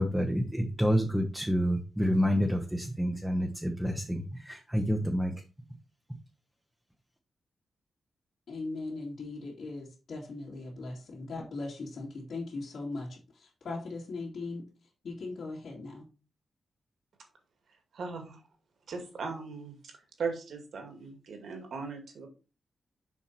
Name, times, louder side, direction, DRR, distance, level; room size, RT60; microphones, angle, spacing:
voice 1, 0.0-5.3, equal, 5° right, 3 dB, 0.9 m, -28 dB
voice 2, 8.5-16.1, left 3 dB, 60° left, -6 dB, 2.6 m, -39 dB
voice 3, 17.9-18.4 18.9-19.7 20.2-22.3, right 4 dB, 65° right, 4 dB, 2.2 m, -38 dB
7.2 x 5.5 x 4.3 m, 0.32 s
wide cardioid pair, 165°, 0 cm